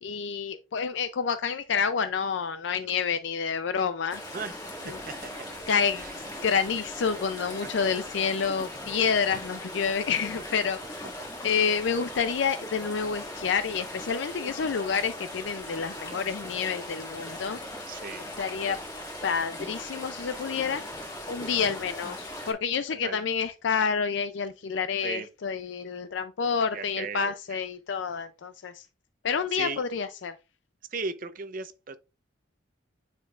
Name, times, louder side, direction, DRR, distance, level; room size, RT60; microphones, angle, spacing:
voice 1, 0.0-4.2 5.7-6.0 6.4-11.0 11.4-17.6 18.4-18.8 19.2-20.8 21.3-28.8 29.2-30.3, left 6 dB, 70° left, 0.4 m, -28 dB
sound 1, 4.1-22.5, left 1 dB, 20° left, 1.9 m, -39 dB
voice 2, 4.3-5.7 6.0-6.1 7.6-7.7 11.5-11.8 17.9-18.3 22.9-23.2 25.0-25.3 26.7-27.6 29.5-29.8 30.9-32.0, right 4 dB, 45° right, 0.6 m, -37 dB
Bowed string instrument, 4.6-8.9, equal, 65° right, 1.5 m, -52 dB
9.8 x 4.4 x 2.4 m
head